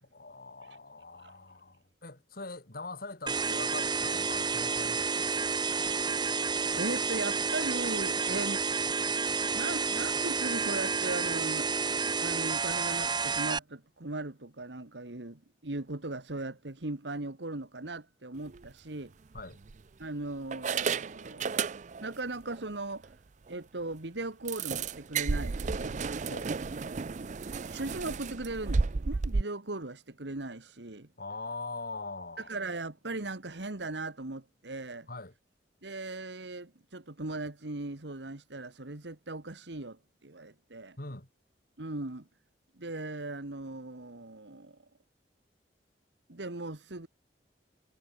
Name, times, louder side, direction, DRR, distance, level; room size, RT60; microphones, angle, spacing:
voice 1, 0.0-5.5 19.3-19.6 26.3-26.5 31.2-32.5 35.1-35.3 41.0-41.3, left 3 dB, 55° left, 3.0 m, -42 dB
sound 1, 3.3-13.6, right 5 dB, 25° right, 1.2 m, -30 dB
voice 2, 6.8-8.7 9.5-11.7 12.2-19.1 20.0-21.6 22.0-23.2 23.5-26.0 27.6-31.1 32.4-35.1 35.8-41.0 41.8-42.3 42.8-44.8 46.3-47.1, right 2 dB, 85° right, 1.9 m, -38 dB
sound 2, 18.5-18.7 19.4-20.0 20.5-22.2 22.5-22.6 23.0-23.1 23.5-23.6 24.5-29.4, right 4 dB, 45° right, 0.5 m, -33 dB
head